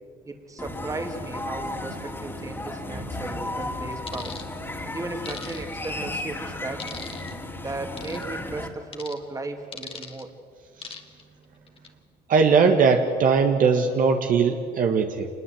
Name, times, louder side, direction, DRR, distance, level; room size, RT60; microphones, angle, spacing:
voice 1, 0.2-4.4 4.9-6.9 7.6-10.3, right 2 dB, 20° right, 4 dB, 2.7 m, -35 dB
sound 1, 0.6-8.7, left 1 dB, 15° left, 2.8 m, -34 dB
sound 2, 4.1-4.4 5.2-5.9 6.8-7.3 8.0-8.2 8.9-9.2 9.7-10.2 10.8-11.2 11.7-11.9, left 5 dB, 35° left, 2.0 m, -39 dB
voice 2, 12.3-15.3, right 5 dB, 55° right, 4 dB, 1.8 m, -20 dB
26.0 x 21.0 x 7.9 m, 2.2 s
cardioid pair, 110°, 17 cm